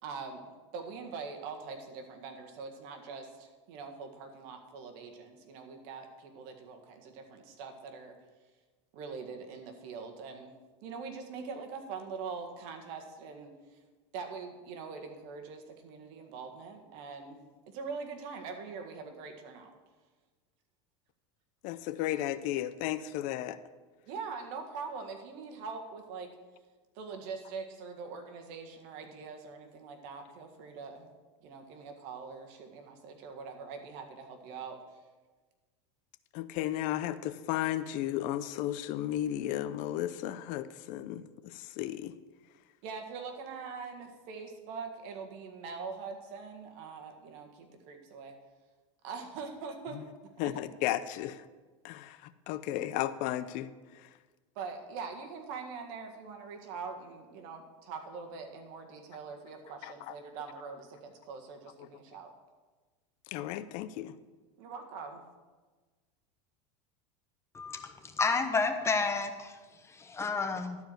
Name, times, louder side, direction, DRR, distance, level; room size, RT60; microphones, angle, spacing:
voice 1, 0.0-8.1 8.9-10.5 10.8-13.5 14.1-17.4 17.7-19.7 24.1-26.3 27.0-31.1 31.4-34.8 42.8-48.3 49.0-50.0 50.4-50.5 54.6-62.3 64.6-65.2, right 5 dB, 65° right, 4 dB, 1.8 m, -43 dB
voice 2, 21.6-23.6 36.3-42.1 50.4-51.4 51.8-53.7 53.9-54.1 59.8-60.1 63.3-64.1, left 13 dB, 55° left, 13 dB, 0.6 m, -34 dB
voice 3, 67.5-69.5 70.0-70.8, left 4 dB, 15° left, 6 dB, 1.0 m, -30 dB
12.5 x 4.7 x 7.8 m, 1.3 s
supercardioid pair, 115°, 15 cm